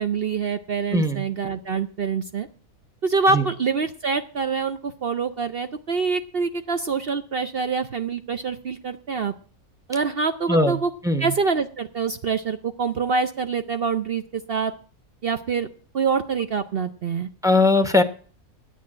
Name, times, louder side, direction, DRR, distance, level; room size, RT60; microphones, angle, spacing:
voice 1, 0.0-2.5 3.0-9.3 9.9-10.9 11.2-14.2 14.5-14.7 15.2-15.7 15.9-17.3, right 5 dB, 55° right, 9 dB, 0.7 m, -25 dB
voice 2, 0.9-1.2 3.3-3.5 10.5-10.8 11.0-11.3 17.4-18.0, left 2 dB, 5° right, 9 dB, 0.8 m, -19 dB
10.0 x 8.6 x 8.6 m, 0.43 s
omnidirectional pair, 1.7 m